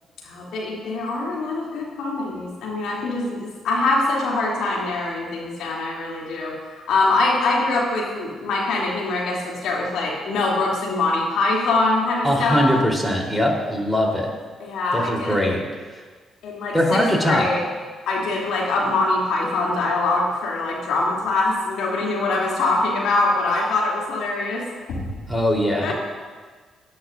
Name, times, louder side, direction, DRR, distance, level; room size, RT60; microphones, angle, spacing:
voice 1, 0.2-12.7 14.6-15.4 16.4-17.6 18.0-25.1 25.8-25.9, left 2 dB, 70° left, -4 dB, 3.1 m, -23 dB
voice 2, 12.2-14.3 14.9-15.6 15.9-16.0 16.7-17.5 25.3-25.9, equal, 5° left, -1 dB, 3.8 m, -21 dB
18.0 x 10.5 x 2.7 m, 1.5 s
hypercardioid pair, 50°, 0 cm